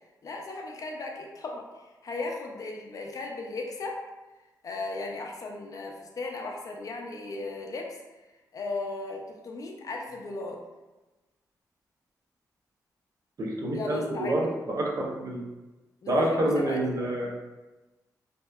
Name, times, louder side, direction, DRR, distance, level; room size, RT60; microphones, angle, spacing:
voice 1, 0.2-1.7 2.0-4.0 4.6-8.0 8.5-10.6 13.7-14.5 16.0-16.8, left 3 dB, 55° left, 1 dB, 0.4 m, -36 dB
voice 2, 13.4-15.4 16.1-17.3, right 1 dB, 50° right, -2 dB, 0.6 m, -27 dB
2.7 x 2.1 x 2.3 m, 1.1 s
cardioid pair, 85°, 7 cm